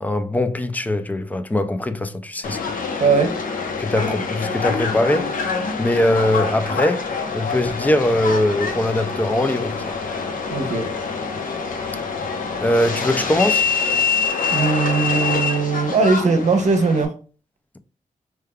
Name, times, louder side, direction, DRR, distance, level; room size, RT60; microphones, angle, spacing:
voice 1, 0.0-2.6 3.8-5.3 5.8-9.9 12.6-13.7, left 1 dB, 10° left, 0.3 m, -21 dB
Subway metro underground, 2.4-17.1, left 4 dB, 90° left, 0.7 m, -25 dB
voice 2, 3.0-3.3 10.5-10.9 14.5-17.1, right 4 dB, 60° right, 0.8 m, -19 dB
4.5 x 3.4 x 2.2 m
wide cardioid pair, 180°, 14 cm